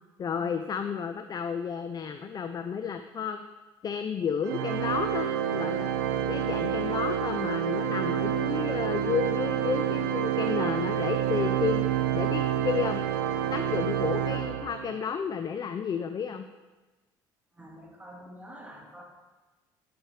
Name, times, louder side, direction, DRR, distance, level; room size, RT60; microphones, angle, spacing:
voice 1, 0.2-3.4 3.8-5.9 6.3-11.9 12.1-13.0 13.5-16.4, left 7 dB, 35° left, 8 dB, 0.5 m, -32 dB
Organ, 4.4-15.1, right 9 dB, 85° right, 0.5 m, -28 dB
voice 2, 17.5-19.0, equal, 15° right, -1 dB, 2.0 m, -47 dB
10.0 x 6.1 x 3.3 m, 1.2 s
hypercardioid pair, 65°, 11 cm